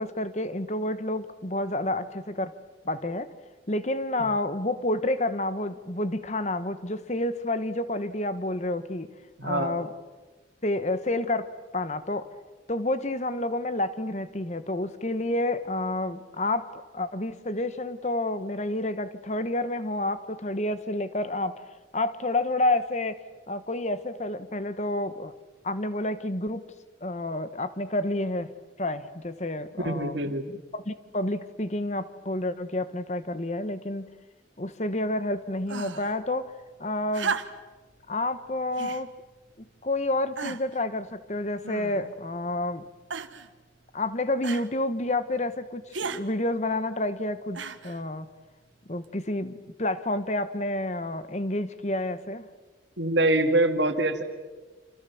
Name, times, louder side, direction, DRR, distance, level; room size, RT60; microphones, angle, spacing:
voice 1, 0.0-2.5 2.8-3.3 3.7-9.1 9.4-9.9 10.6-12.3 12.7-21.6 21.9-23.2 23.5-25.3 25.6-26.6 27.0-28.5 28.8-34.1 34.6-36.5 36.8-37.3 38.1-39.1 39.8-42.8 43.9-48.3 48.9-52.5, left 1 dB, 35° left, 12 dB, 1.3 m, -29 dB
voice 2, 9.4-9.8 29.8-30.4 53.0-54.2, right 2 dB, 65° right, 6 dB, 2.4 m, -24 dB
sound 1, 35.7-36.2 37.1-37.8 38.8-39.1 39.8-39.9 40.4-40.8 41.6-42.2 43.1-43.5 44.4-44.7 45.9-46.2 47.5-48.0 49.0-49.1, right 5 dB, 85° right, 1.5 m, -34 dB
28.5 x 27.5 x 7.2 m, 1.3 s
head